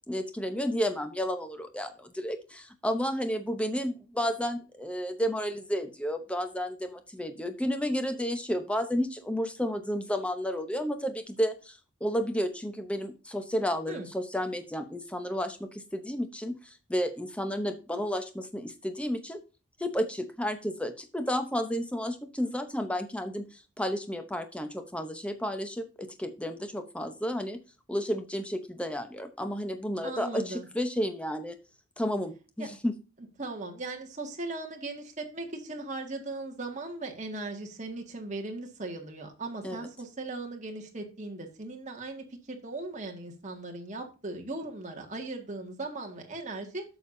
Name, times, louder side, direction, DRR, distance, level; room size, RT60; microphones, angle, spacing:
voice 1, 0.1-19.4 19.8-27.6 27.9-31.5 32.0-33.0 39.6-39.8, equal, 5° left, 8 dB, 0.8 m, -32 dB
voice 2, 30.0-30.7 32.6-32.7 33.4-46.8, right 2 dB, 35° right, 2 dB, 1.8 m, -38 dB
11.0 x 7.0 x 2.7 m, 0.32 s
head